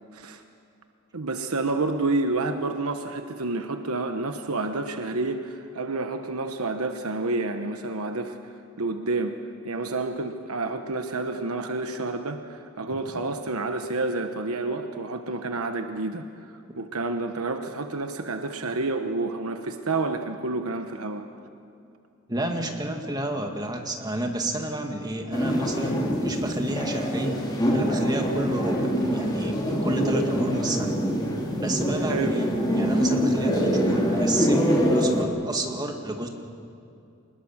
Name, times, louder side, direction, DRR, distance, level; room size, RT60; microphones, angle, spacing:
voice 1, 1.1-8.4 8.8-9.3 9.6-21.3 32.0-32.4, right 3 dB, 90° right, 7 dB, 1.1 m, -29 dB
voice 2, 22.3-27.4 27.7-30.9 31.6-36.3, right 1 dB, 20° right, 3 dB, 2.1 m, -30 dB
sound 1, 25.3-35.2, equal, 20° left, 3.1 m, -24 dB
25.5 x 20.5 x 7.4 m, 2.6 s
head